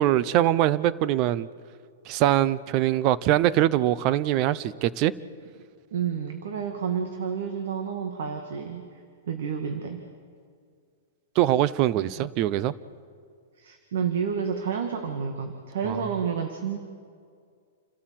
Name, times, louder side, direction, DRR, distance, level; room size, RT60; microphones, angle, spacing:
voice 1, 0.0-1.5 2.1-5.1 11.4-12.7 15.9-16.0, right 13 dB, 35° right, 18 dB, 0.7 m, -23 dB
voice 2, 5.9-9.0 9.3-10.0 12.0-12.3 13.6-16.8, right 7 dB, 70° right, 5 dB, 2.0 m, -30 dB
29.0 x 13.0 x 7.7 m, 2.2 s
hypercardioid pair, 150°, 0 cm